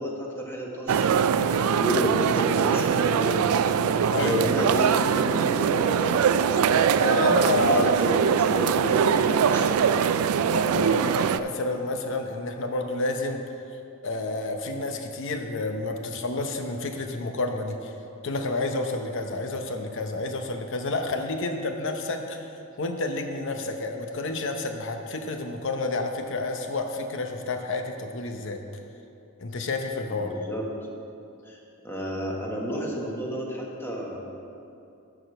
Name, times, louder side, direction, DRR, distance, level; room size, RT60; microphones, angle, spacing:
voice 1, 0.0-3.6 4.2-6.1 7.7-9.9 30.1-30.7 31.4-31.6 31.8-34.2, equal, 10° left, -2 dB, 1.3 m, -31 dB
sound 1, 0.9-11.4, right 7 dB, 85° right, 0.3 m, -22 dB
voice 2, 4.1-4.5 7.0-7.9 10.5-13.4 14.0-17.9 18.2-22.4 22.8-28.6 29.4-30.3, left 2 dB, 60° left, 5 dB, 0.7 m, -29 dB
10.0 x 4.9 x 6.5 m, 2.7 s
head